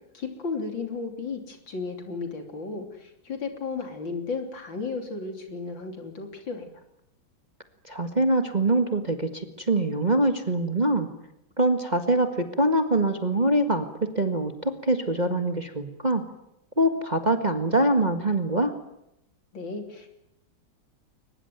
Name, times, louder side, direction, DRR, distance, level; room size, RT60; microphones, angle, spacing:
voice 1, 0.1-6.7 19.5-20.1, left 4 dB, 65° left, 5 dB, 3.9 m, -34 dB
voice 2, 7.8-11.1 11.6-16.2 16.8-18.7, right 1 dB, 20° right, 6 dB, 1.6 m, -24 dB
23.0 x 21.0 x 9.4 m, 0.84 s
omnidirectional pair, 2.2 m